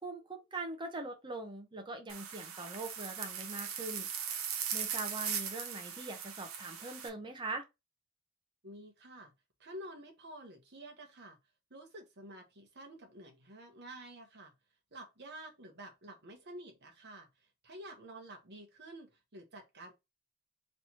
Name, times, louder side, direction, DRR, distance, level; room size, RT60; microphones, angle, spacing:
voice 1, 0.0-4.1 4.7-7.6, right 2 dB, 20° right, 0.8 m, -42 dB
sound 1, 2.1-7.1, right 7 dB, 75° right, 0.8 m, -39 dB
voice 2, 8.6-9.3 9.6-11.4 11.7-14.5 14.9-19.9, right 1 dB, 50° right, 1.1 m, -50 dB
3.3 x 2.9 x 4.2 m
head